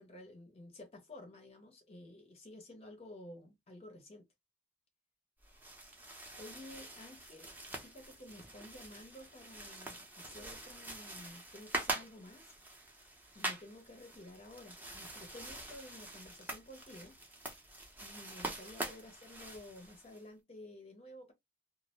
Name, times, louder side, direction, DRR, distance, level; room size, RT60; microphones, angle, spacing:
voice 1, 0.0-4.3 6.4-12.5 13.3-17.2 18.0-21.3, left 1 dB, 35° left, 0.6 m, -52 dB
sound 1, 5.4-20.2, right 2 dB, 10° right, 0.6 m, -45 dB
2.3 x 2.0 x 2.9 m
head